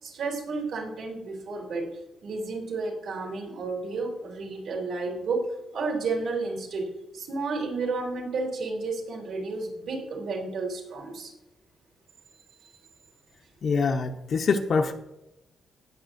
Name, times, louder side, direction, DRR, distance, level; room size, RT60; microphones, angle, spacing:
voice 1, 0.0-1.9 2.2-5.4 5.7-6.9 7.1-11.3 12.6-12.7, right 3 dB, 70° right, -1 dB, 3.2 m, -31 dB
voice 2, 13.6-14.9, left 4 dB, 50° left, 4 dB, 0.7 m, -24 dB
18.5 x 7.3 x 2.6 m, 0.94 s
cardioid pair, 125°, 0 cm